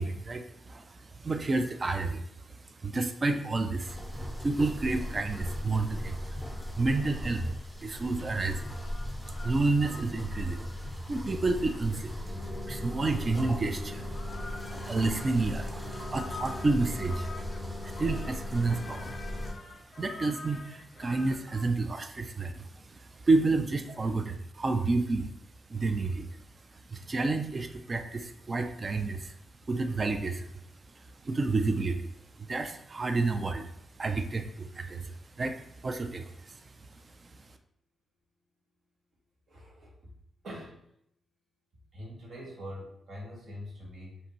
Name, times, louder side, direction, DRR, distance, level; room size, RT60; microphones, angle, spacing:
voice 1, 0.0-2.3 2.8-4.0 4.4-6.4 6.8-7.4 7.8-8.7 9.4-10.6 11.1-12.2 12.7-14.1 14.9-17.3 17.8-19.1 20.0-22.7 23.2-25.3 25.7-26.3 26.9-29.3 29.7-30.5 31.2-32.1 32.4-33.7 34.0-35.1 35.4-35.6 35.8-36.6, right 3 dB, 30° right, 7 dB, 0.4 m, -30 dB
sound 1, 3.8-19.5, left 1 dB, 5° right, 0.8 m, -37 dB
sound 2, 4.4-5.9 6.3-21.6, left 4 dB, 40° left, 0.4 m, -49 dB
voice 2, 39.5-40.1 40.4-40.9 41.9-44.2, equal, 60° right, -3 dB, 1.3 m, -44 dB
5.3 x 2.6 x 3.1 m, 0.73 s
cardioid pair, 115°, 0 cm